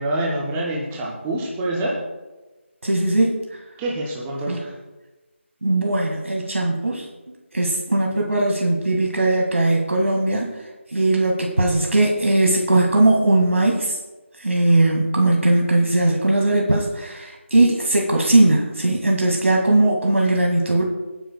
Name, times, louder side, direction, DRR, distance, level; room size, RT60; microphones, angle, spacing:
voice 1, 0.0-2.0 3.8-4.7, right 1 dB, 5° right, -3 dB, 0.3 m, -26 dB
voice 2, 2.8-3.4 4.5-4.6 5.6-7.1 7.5-10.5 10.9-14.0 14.4-20.8, right 2 dB, 80° right, 0 dB, 1.9 m, -19 dB
23.0 x 9.3 x 2.2 m, 1.2 s
figure-of-eight pair, 170°, 7 cm